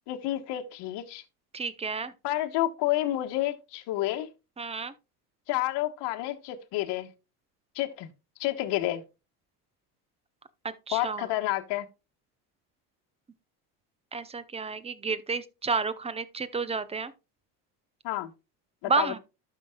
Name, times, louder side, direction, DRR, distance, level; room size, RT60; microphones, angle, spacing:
voice 1, 0.1-1.2 2.2-4.3 5.5-7.1 7.7-8.1 8.4-9.0 10.9-11.9 18.0-18.3 18.8-19.2, left 15 dB, 55° left, 1.3 m, -29 dB
voice 2, 1.5-2.1 4.6-4.9 10.6-11.3 14.1-17.1 18.8-19.2, right 4 dB, 15° right, 0.7 m, -31 dB
12.5 x 5.8 x 2.3 m
supercardioid pair, 95°, 48 cm